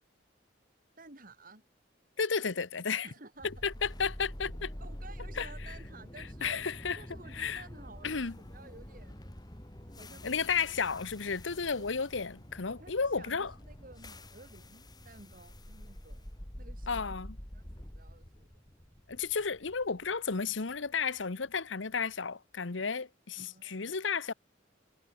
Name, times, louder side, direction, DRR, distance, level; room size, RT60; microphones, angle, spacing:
voice 1, 1.0-1.6 3.0-3.7 4.8-6.6 7.0-9.3 9.9-10.5 11.8-11.9 12.7-17.1 17.5-18.6 23.4-24.0, right 2 dB, 45° right, 3.9 m, -54 dB
voice 2, 2.2-3.1 3.4-4.7 5.4-5.7 6.4-7.0 7.3-7.6 8.0-8.3 10.2-13.5 16.9-17.4 19.1-24.3, left 5 dB, 85° left, 1.1 m, -33 dB
sound 1, 3.4-21.5, equal, 20° left, 2.6 m, -47 dB
head